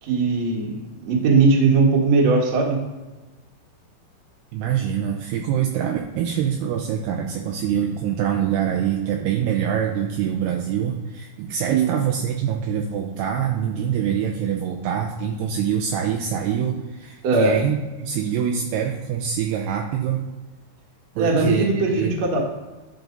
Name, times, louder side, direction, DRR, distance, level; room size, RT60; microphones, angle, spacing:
voice 1, 0.0-2.8 11.7-11.9 17.2-17.6 21.2-22.4, right 4 dB, 60° right, -1 dB, 1.9 m, -19 dB
voice 2, 4.5-20.3 21.2-22.1, right 8 dB, 85° right, 2 dB, 2.4 m, -25 dB
10.5 x 4.8 x 4.0 m, 1.2 s
omnidirectional pair, 5.3 m